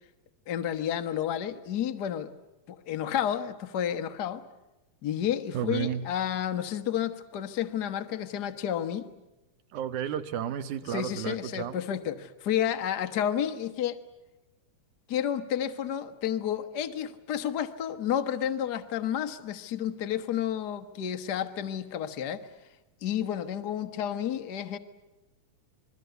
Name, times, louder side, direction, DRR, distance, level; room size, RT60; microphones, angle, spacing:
voice 1, 0.5-2.3 2.7-4.4 5.0-9.1 10.9-14.0 15.1-22.5 23.0-24.8, left 10 dB, 60° left, 10 dB, 1.0 m, -31 dB
voice 2, 5.5-6.0 9.7-11.8, right 9 dB, 70° right, 11 dB, 2.5 m, -32 dB
28.0 x 22.0 x 8.2 m, 1.0 s
omnidirectional pair, 3.8 m